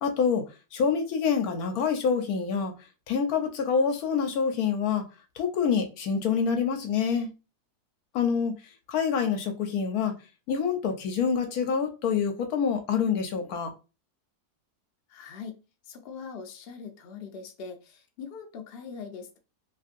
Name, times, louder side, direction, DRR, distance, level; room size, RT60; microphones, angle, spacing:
voice 1, 0.0-0.4 0.7-2.7 3.1-5.0 5.4-7.3 8.1-8.5 8.9-10.1 10.5-13.7, left 6 dB, 75° left, 1.1 m, -26 dB
voice 2, 15.1-15.6 15.8-19.4, left 5 dB, 60° left, 0.7 m, -42 dB
2.9 x 2.6 x 2.5 m
omnidirectional pair, 1.7 m